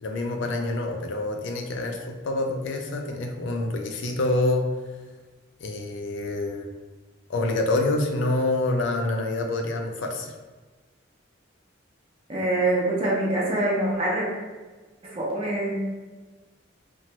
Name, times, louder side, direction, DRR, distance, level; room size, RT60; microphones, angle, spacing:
voice 1, 0.0-4.7 5.6-6.7 7.3-10.3, left 2 dB, 70° left, 4 dB, 0.4 m, -27 dB
voice 2, 12.3-14.3 15.0-15.8, right 1 dB, 30° right, -4 dB, 0.6 m, -25 dB
3.0 x 2.2 x 2.8 m, 1.3 s
head